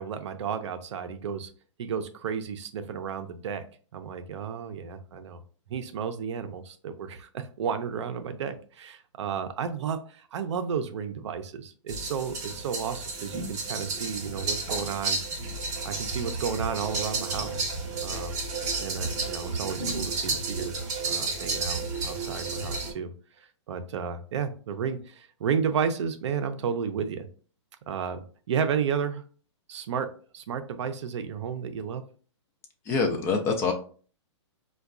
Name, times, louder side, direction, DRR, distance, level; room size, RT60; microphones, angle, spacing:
voice 1, 0.0-1.5 1.8-3.6 3.9-5.4 5.7-15.2 15.8-17.7 18.0-18.4 18.8-20.7 21.0-23.1 23.4-27.3 27.9-29.2 29.7-32.0, right 7 dB, 70° right, 8 dB, 0.5 m, -32 dB
sound 1, 11.9-22.9, right 3 dB, 20° right, 0.7 m, -32 dB
voice 2, 32.9-33.7, left 4 dB, 15° left, 4 dB, 0.3 m, -25 dB
4.4 x 2.2 x 2.4 m, 0.42 s
hypercardioid pair, 150°, 16 cm